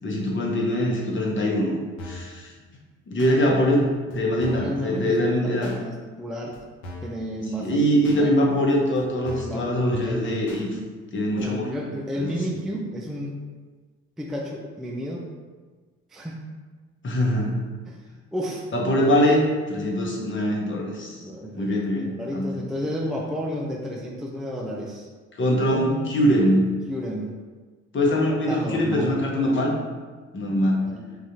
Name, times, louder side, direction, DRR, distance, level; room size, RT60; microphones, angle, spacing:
voice 1, 0.0-1.8 2.0-2.5 3.1-5.7 7.6-10.7 11.1-11.7 12.2-12.6 17.0-17.5 18.7-21.2 21.5-22.5 25.3-26.7 27.9-29.7 30.3-30.9, equal, 35° left, -2 dB, 0.9 m, -23 dB
sound 1, 2.0-2.3 3.2-3.4 4.1-4.2 4.4-4.8 5.6-5.8 6.5-6.6 6.8-7.2 8.0-8.2 8.9-9.0 9.3-9.6 10.5-10.6 11.4-11.5, left 1 dB, 70° left, 0.8 m, -39 dB
voice 2, 4.5-6.6 7.0-8.5 9.2-10.2 11.4-13.4 14.2-15.3 16.1-16.4 17.9-18.0 18.3-18.7 21.1-25.1 25.7-25.9 26.9-27.4 28.2-29.2 30.5-31.1, equal, ahead, -1 dB, 0.4 m, -32 dB
3.7 x 2.4 x 2.8 m, 1.4 s
hypercardioid pair, 50°, 36 cm